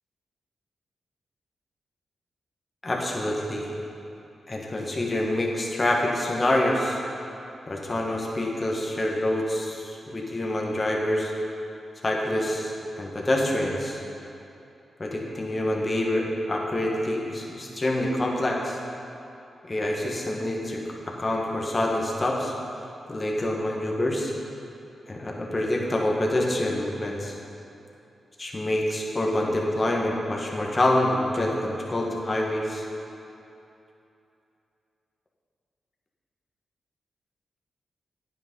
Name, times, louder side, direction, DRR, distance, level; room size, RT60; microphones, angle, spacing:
voice 1, 2.8-3.7 4.5-7.0 7.7-11.3 12.0-14.0 15.0-18.8 19.7-22.5 23.1-24.3 25.1-27.3 28.4-32.8, left 1 dB, 35° left, -1 dB, 1.6 m, -26 dB
9.5 x 6.1 x 5.5 m, 2.8 s
supercardioid pair, 45°, 0 cm